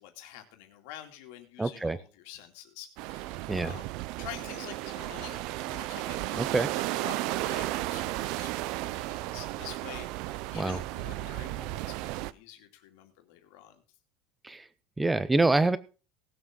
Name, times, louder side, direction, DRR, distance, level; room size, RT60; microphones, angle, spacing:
voice 1, 0.0-3.9 4.2-13.8, left 12 dB, 65° left, 5 dB, 2.5 m, -47 dB
voice 2, 1.6-2.0 3.5-3.7 6.4-6.7 10.5-10.8 14.4-14.6 15.0-15.8, right 2 dB, 5° right, 16 dB, 0.6 m, -26 dB
sound 1, 3.0-12.3, right 17 dB, 50° right, 0.5 m, -34 dB
18.5 x 7.6 x 3.7 m, 0.33 s
cardioid pair, 180°, 0 cm